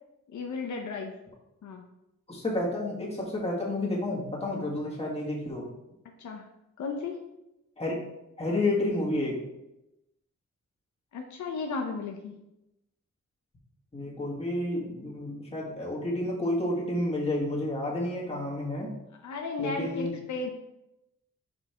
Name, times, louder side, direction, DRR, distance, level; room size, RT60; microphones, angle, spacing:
voice 1, 0.3-1.1 1.6-1.8 6.2-6.4 6.8-7.2 11.1-12.4 19.1-20.5, left 4 dB, 75° left, 2 dB, 0.7 m, -34 dB
voice 2, 2.3-5.7 7.8-8.0 8.4-9.4 13.9-18.9 19.6-20.1, left 1 dB, 20° left, -4 dB, 1.8 m, -30 dB
5.5 x 4.6 x 4.4 m, 0.91 s
wide cardioid pair, 125°, 29 cm